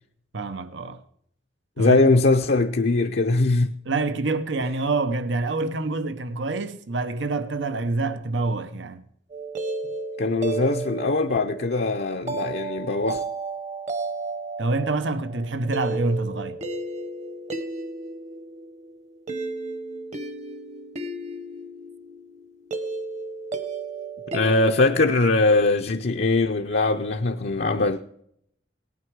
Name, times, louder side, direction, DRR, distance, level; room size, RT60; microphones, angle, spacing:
voice 1, 0.3-1.0 1.8-2.0 3.8-9.0 14.6-16.6, right 3 dB, 80° right, 0.8 m, -26 dB
voice 2, 1.8-3.7 10.2-13.2 24.3-28.0, left 3 dB, 60° left, 0.6 m, -21 dB
sound 1, 9.3-25.2, right 3 dB, 40° right, 1.1 m, -33 dB
18.0 x 9.5 x 4.7 m
head